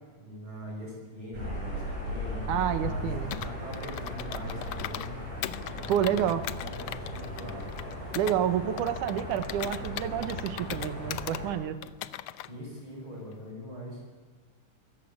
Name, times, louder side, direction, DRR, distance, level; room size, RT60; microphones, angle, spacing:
voice 1, 0.2-5.2 5.8-7.6 12.4-14.0, equal, 35° right, -2 dB, 6.6 m, -42 dB
sound 1, 1.3-11.5, left 1 dB, 55° right, 9.0 m, -37 dB
voice 2, 2.5-3.4 5.9-6.4 8.1-11.8, right 10 dB, 75° right, 11 dB, 2.7 m, -29 dB
Computer keyboard, 3.3-5.1 5.4-8.4 8.8-11.4 11.8-12.5, left 13 dB, 90° left, 1.4 m, -39 dB
25.0 x 14.5 x 8.5 m, 1.5 s
omnidirectional pair, 3.8 m